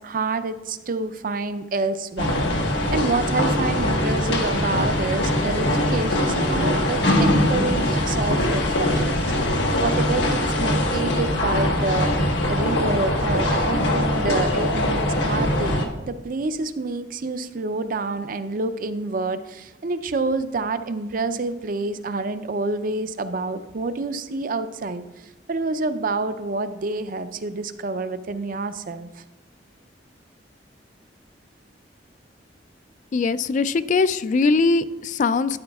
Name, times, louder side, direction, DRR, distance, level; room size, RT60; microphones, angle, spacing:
voice 1, 0.0-2.4 2.9-9.3 9.8-12.1 12.5-25.0 25.5-29.2, right 3 dB, 50° right, 11 dB, 0.5 m, -28 dB
sound 1, 2.2-15.9, left 1 dB, 85° left, 1.4 m, -22 dB
voice 2, 33.1-35.6, left 4 dB, 45° left, 14 dB, 0.3 m, -21 dB
12.5 x 9.6 x 2.3 m, 1.0 s
head